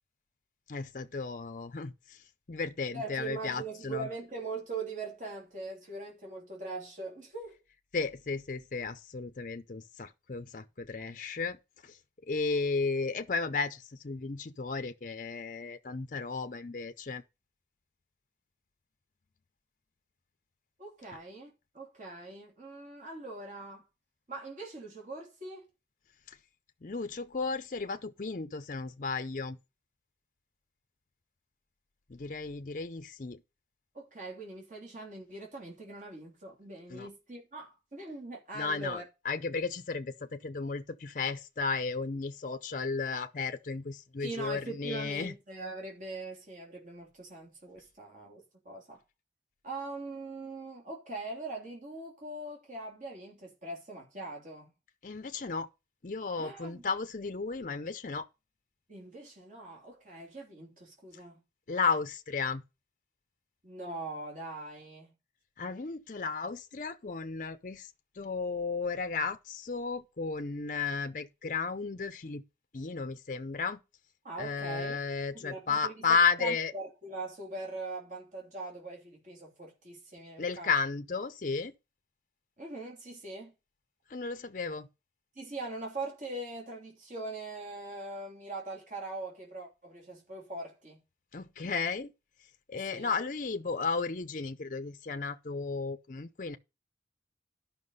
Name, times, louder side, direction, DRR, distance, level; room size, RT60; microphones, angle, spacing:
voice 1, 0.7-2.2 2.5-4.1 7.9-11.6 11.8-12.0 12.3-17.2 26.3-26.4 26.8-29.6 32.1-33.4 36.9-37.1 38.5-45.3 55.0-55.7 56.0-58.3 61.7-62.6 65.6-67.9 68.2-72.4 72.7-73.8 74.4-76.7 80.4-81.7 84.1-84.9 91.3-92.1 92.7-96.6, left 4 dB, 45° left, 0.6 m, -34 dB
voice 2, 2.9-7.6 20.8-23.8 24.3-25.7 33.9-39.0 44.2-49.0 49.6-54.7 56.4-56.8 58.9-61.4 63.6-65.1 74.2-75.0 75.3-80.7 82.6-83.5 85.3-91.0 92.7-93.1, right 2 dB, 45° right, 3.1 m, -42 dB
11.5 x 5.8 x 5.5 m
head